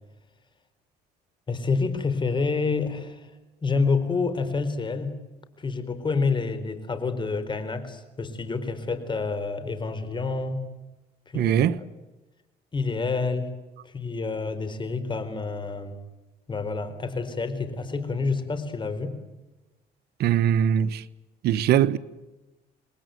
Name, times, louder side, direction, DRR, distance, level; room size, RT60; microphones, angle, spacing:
voice 1, 1.5-3.3 3.6-5.2 5.6-10.6 11.3-11.9 12.7-13.5 13.8-16.0 16.5-19.2, left 4 dB, 30° left, 4.3 m, -28 dB
voice 2, 11.3-11.8 20.2-21.0 21.4-22.0, right 10 dB, 70° right, 1.1 m, -21 dB
28.5 x 21.5 x 9.3 m
cardioid pair, 110°, 17 cm